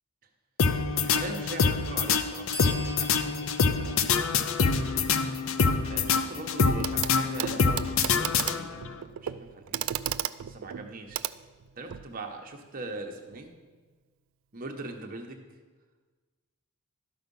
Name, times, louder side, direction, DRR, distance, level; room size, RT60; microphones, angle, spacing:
sound 1, 0.6-8.9, left 5 dB, 65° left, 0.6 m, -26 dB
voice 1, 0.9-4.4 4.8-4.9 5.9-9.9 10.5-11.3 11.8-13.5 14.5-15.5, right 2 dB, 40° right, 3 dB, 1.0 m, -41 dB
sound 2, 2.5-6.1, equal, 45° left, 1.3 m, -45 dB
Clock, 6.8-7.1 7.4-12.1 13.3-13.4, right 11 dB, 65° right, 0.3 m, -34 dB
12.5 x 5.9 x 5.4 m, 1.4 s
head